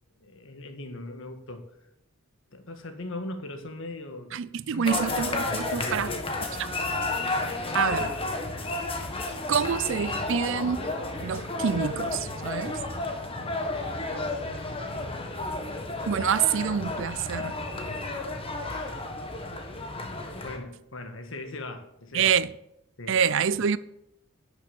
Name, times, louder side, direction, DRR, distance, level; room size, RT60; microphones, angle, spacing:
voice 1, 0.2-1.7 2.5-4.4 4.7-5.0 5.8-6.2 14.0-15.2 18.7-19.1 20.4-22.3 23.0-23.2, left 2 dB, 60° left, 1.5 m, -40 dB
voice 2, 4.3-6.1 6.6-6.7 7.7-8.1 9.5-10.9 11.2-12.8 16.1-17.6 22.1-22.5 23.1-23.8, right 7 dB, 60° right, 0.4 m, -26 dB
sound 1, 4.8-20.6, left 2 dB, 25° left, 1.4 m, -32 dB
11.5 x 6.8 x 7.1 m
head